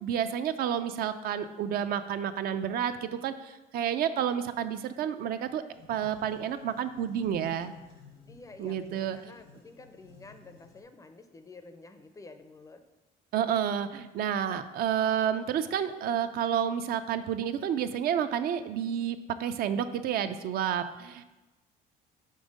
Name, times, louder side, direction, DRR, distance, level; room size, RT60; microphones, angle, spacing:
voice 1, 0.0-5.6 5.9-7.7 8.6-9.2 13.3-21.2, right 9 dB, 65° right, 10 dB, 0.4 m, -30 dB
sound 1, 5.7-10.8, left 3 dB, 80° left, 1.0 m, -55 dB
voice 2, 8.3-12.8, left 3 dB, 20° left, 8 dB, 0.4 m, -50 dB
5.4 x 3.5 x 5.1 m, 1.1 s
cardioid pair, 110°, 17 cm